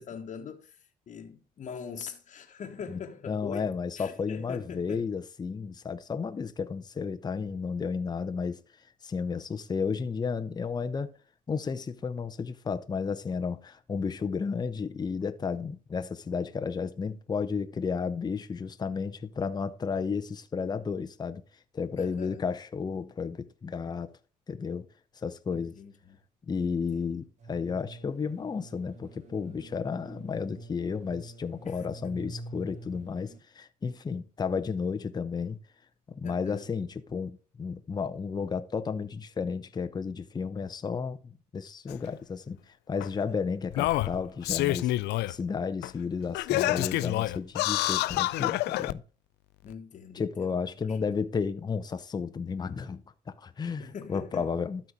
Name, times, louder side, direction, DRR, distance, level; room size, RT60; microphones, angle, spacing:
voice 1, 0.0-3.7 4.0-5.1 22.0-22.5 25.5-26.2 26.9-27.2 31.6-32.2 36.2-36.7 49.6-51.2 53.8-54.5, left 6 dB, 45° left, 1.3 m, -43 dB
voice 2, 3.3-8.6 9.0-11.1 11.5-21.4 21.7-24.1 24.5-24.9 25.2-25.7 26.5-35.6 36.1-42.6 42.9-44.9 45.3-49.0 50.1-54.8, left 5 dB, 25° left, 0.8 m, -33 dB
sound 1, 27.4-33.4, right 2 dB, 40° right, 1.8 m, -46 dB
Singing, 41.9-42.0 43.0-43.1 43.7-45.3 45.8-45.9 46.3-48.9 49.7-49.8, left 17 dB, 80° left, 0.5 m, -27 dB
12.5 x 4.4 x 4.9 m
cardioid pair, 110°, 17 cm